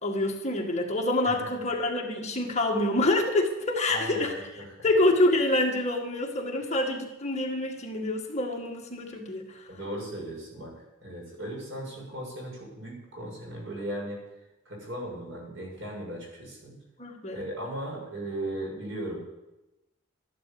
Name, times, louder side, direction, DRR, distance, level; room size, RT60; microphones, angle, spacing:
voice 1, 0.0-4.3 4.8-9.7 17.0-17.5, left 2 dB, 35° left, 2 dB, 1.9 m, -27 dB
voice 2, 3.9-4.3 4.6-4.7 9.7-14.2 14.7-16.7 17.3-19.2, right 1 dB, 70° right, -1 dB, 7.0 m, -37 dB
13.5 x 11.5 x 7.0 m, 0.96 s
head